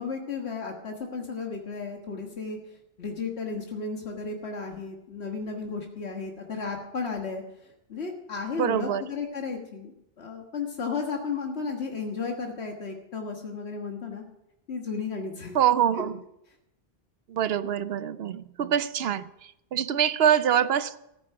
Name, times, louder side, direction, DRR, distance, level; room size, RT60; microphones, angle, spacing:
voice 1, 0.0-2.6 3.0-14.2 14.7-15.6, left 4 dB, 80° left, 1.8 m, -34 dB
voice 2, 8.6-9.0 15.5-16.1 17.3-19.3 19.7-21.0, right 9 dB, 70° right, 0.9 m, -24 dB
14.5 x 9.5 x 6.7 m
omnidirectional pair, 1.1 m